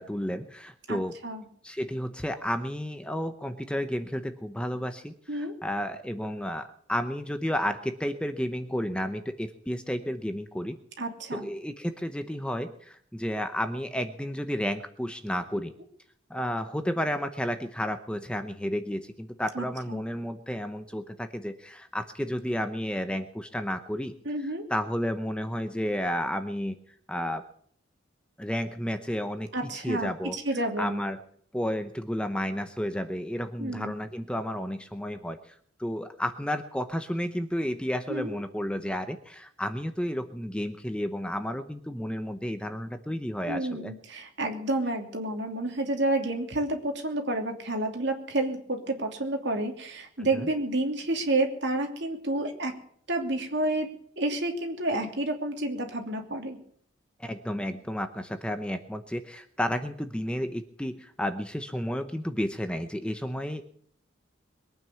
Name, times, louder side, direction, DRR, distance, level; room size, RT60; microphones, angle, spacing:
voice 1, 0.0-1.1 1.6-10.8 11.3-15.7 16.3-24.1 24.4-26.8 27.1-27.4 28.4-29.5 29.7-30.4 30.8-31.2 31.5-43.9 50.2-50.5 57.2-63.6, equal, 5° left, 8 dB, 0.8 m, -32 dB
voice 2, 0.9-1.4 5.3-5.5 11.0-11.5 19.5-20.0 24.2-24.6 29.5-30.1 30.4-31.0 33.6-33.9 38.1-38.4 43.5-52.7 53.1-53.9 54.2-56.6, right 2 dB, 60° right, 3 dB, 2.9 m, -30 dB
22.0 x 9.3 x 6.9 m, 0.62 s
head